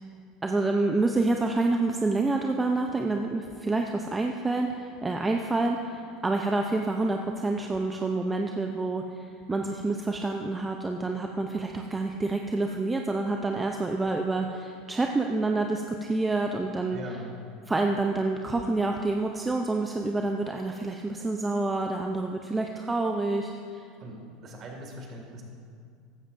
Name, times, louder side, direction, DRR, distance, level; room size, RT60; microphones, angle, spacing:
voice 1, 0.4-17.0 17.7-23.8, right 2 dB, 15° right, 3 dB, 0.6 m, -28 dB
voice 2, 16.9-17.3 24.0-25.4, right 1 dB, 40° right, 1 dB, 2.2 m, -41 dB
14.5 x 11.5 x 2.6 m, 2.2 s
supercardioid pair, 110°, 0 cm